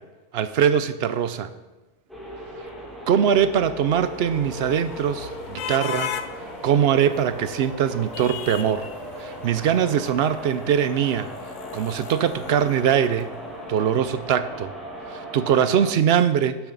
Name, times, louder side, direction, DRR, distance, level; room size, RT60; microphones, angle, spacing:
voice 1, 0.3-1.5 3.1-6.1 6.6-8.9 9.2-11.3 11.7-13.3 13.7-14.7 15.1-16.6, right 8 dB, 65° right, 12 dB, 0.8 m, -22 dB
sound 1, 2.1-15.9, equal, ahead, 2.3 m, -38 dB
sound 2, 3.5-13.8, left 10 dB, 85° left, 1.0 m, -38 dB
12.0 x 7.1 x 4.0 m, 1.1 s
omnidirectional pair, 1.2 m